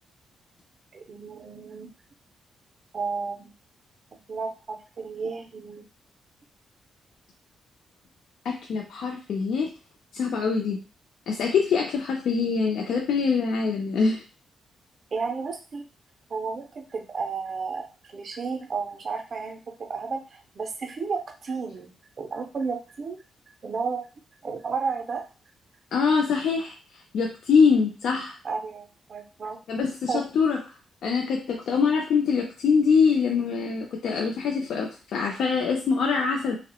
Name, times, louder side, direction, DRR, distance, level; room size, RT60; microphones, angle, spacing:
voice 1, 0.9-1.9 2.9-3.5 4.1-5.8 15.1-15.8 16.3-23.2 23.6-24.0 24.4-25.3 28.4-29.6 30.1-30.2, right 5 dB, 35° right, 4 dB, 0.4 m, -32 dB
voice 2, 8.4-9.7 10.1-10.8 11.3-14.2 25.9-26.7 27.1-28.4 29.7-30.6 31.0-36.6, left 5 dB, 70° left, 0 dB, 0.4 m, -24 dB
2.7 x 2.0 x 2.9 m, 0.33 s
wide cardioid pair, 170°, 0 cm